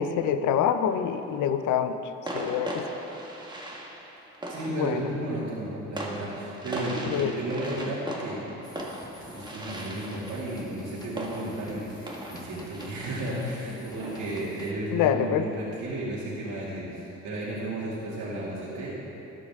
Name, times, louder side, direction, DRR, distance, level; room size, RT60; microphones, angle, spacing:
voice 1, 0.0-2.0 2.3-2.8 4.7-5.0 7.1-7.3 7.8-7.9 14.9-15.5, left 9 dB, 85° left, 10 dB, 0.6 m, -26 dB
sound 1, 1.0-1.3 2.3-15.7, right 1 dB, 15° right, 1.6 m, -39 dB
voice 2, 4.5-8.4 9.2-18.9, right 1 dB, 70° right, -8 dB, 2.4 m, -33 dB
sound 2, 8.6-14.7, left 1 dB, 15° left, 1.2 m, -48 dB
12.5 x 10.0 x 3.6 m, 2.9 s
cardioid pair, 90°, 30 cm